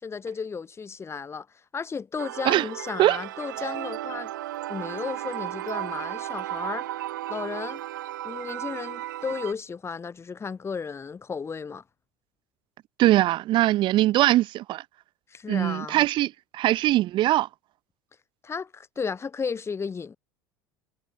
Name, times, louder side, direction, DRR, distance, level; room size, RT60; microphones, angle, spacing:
voice 1, 0.0-1.5 1.7-4.3 4.7-6.9 7.3-7.8 8.2-11.8 15.3-16.1 18.4-20.2, left 5 dB, 25° left, 3.9 m, -34 dB
sound 1, 2.2-9.5, right 14 dB, 75° right, 2.7 m, -34 dB
voice 2, 13.0-14.8 15.5-17.5, right 15 dB, 50° right, 1.7 m, -21 dB
hypercardioid pair, 75°, 10 cm